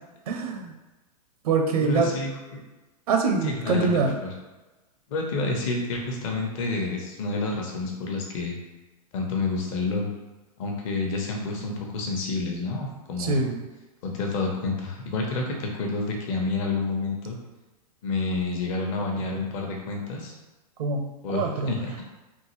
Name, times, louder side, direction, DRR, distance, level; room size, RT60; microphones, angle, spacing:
voice 1, 0.3-0.7 1.4-2.1 3.1-4.2 13.2-13.6 20.8-21.7, right 4 dB, 70° right, 4 dB, 0.6 m, -24 dB
voice 2, 1.8-2.3 3.4-4.3 5.1-8.6 9.1-10.1 10.6-13.4 14.0-17.4 18.0-20.3 21.2-22.0, left 3 dB, 55° left, 0 dB, 1.0 m, -29 dB
3.7 x 2.6 x 3.1 m, 1.1 s
hypercardioid pair, 115°, 20 cm